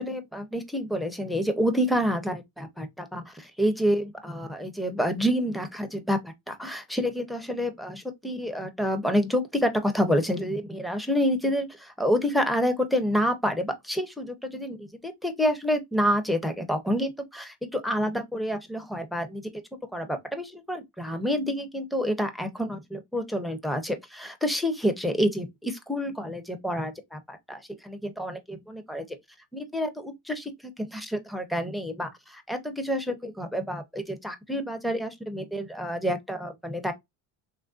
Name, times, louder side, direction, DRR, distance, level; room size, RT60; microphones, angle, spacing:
voice 1, 0.0-19.4 19.9-29.0 29.5-30.5 30.8-36.9, equal, ahead, 0.6 m, -28 dB
3.1 x 2.6 x 2.3 m
cardioid pair, 100°, 44 cm